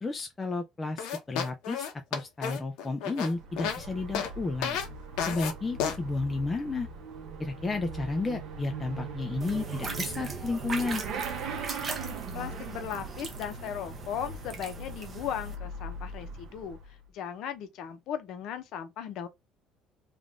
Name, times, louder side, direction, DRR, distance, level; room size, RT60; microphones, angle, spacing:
voice 1, 0.0-4.8 5.2-6.9 7.4-11.0, left 3 dB, 15° left, 0.4 m, -32 dB
sound 1, 1.0-3.8 4.1-4.3 4.6-4.9 5.2-5.5 5.8-6.0, left 7 dB, 80° left, 0.9 m, -31 dB
Motorcycle / Accelerating revving vroom, 3.2-17.0, right 3 dB, 55° right, 1.0 m, -40 dB
sound 2, 9.4-15.5, right 4 dB, 25° right, 0.8 m, -40 dB
voice 2, 12.3-16.8 17.1-19.3, left 9 dB, 55° left, 0.8 m, -37 dB
3.7 x 2.5 x 3.5 m
cardioid pair, 170°, 0 cm